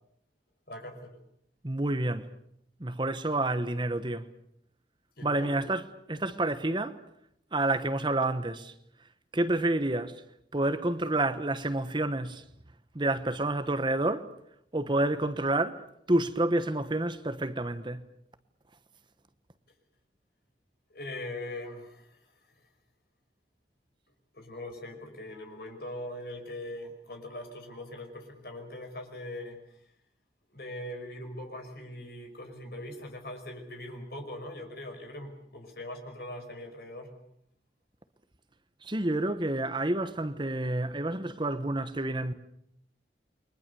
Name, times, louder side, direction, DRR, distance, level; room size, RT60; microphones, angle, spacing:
voice 1, 0.7-1.2 5.2-5.6 20.9-22.2 24.3-29.6 30.5-37.1, left 1 dB, 60° left, 5.5 m, -41 dB
voice 2, 1.6-2.3 2.8-4.3 5.2-5.8 6.1-7.0 7.5-8.7 9.3-10.2 10.5-12.4 12.9-14.3 14.7-15.8 16.1-18.0 38.8-42.3, right 2 dB, 25° right, 1.2 m, -29 dB
29.5 x 23.5 x 7.0 m
head